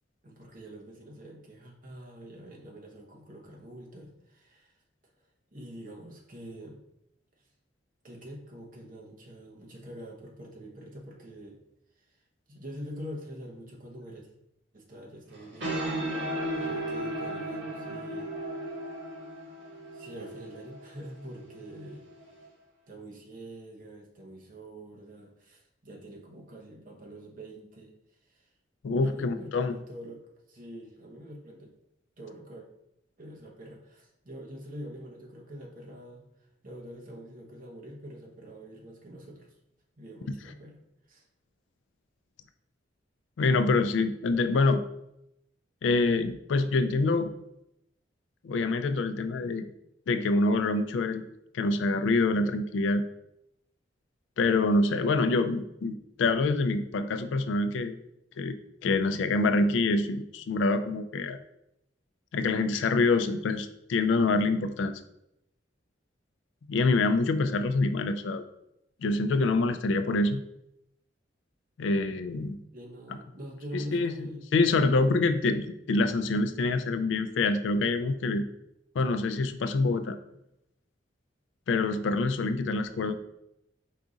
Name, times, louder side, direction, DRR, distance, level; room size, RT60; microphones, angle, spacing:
voice 1, 0.2-4.8 5.5-6.8 7.4-7.5 8.0-11.6 12.0-12.2 12.5-14.3 14.7-15.8 16.1-16.2 16.5-18.3 19.9-22.0 22.9-27.9 28.2-28.5 28.9-31.7 32.2-32.7 33.2-36.2 36.6-39.5 40.0-40.8 41.1-41.2 72.7-74.5, equal, 45° right, 0 dB, 0.9 m, -45 dB
sound 1, 15.3-22.5, right 1 dB, 75° right, 1.4 m, -36 dB
voice 2, 28.8-29.7 43.4-44.8 45.8-47.3 48.4-49.7 50.1-51.3 51.5-53.0 54.4-57.9 58.4-58.6 58.8-61.4 62.3-64.9 66.7-68.4 69.0-70.4 71.8-72.6 73.7-78.5 79.0-80.2 81.7-83.1, left 3 dB, 75° left, 9 dB, 0.3 m, -26 dB
4.7 x 2.4 x 3.9 m, 0.81 s
head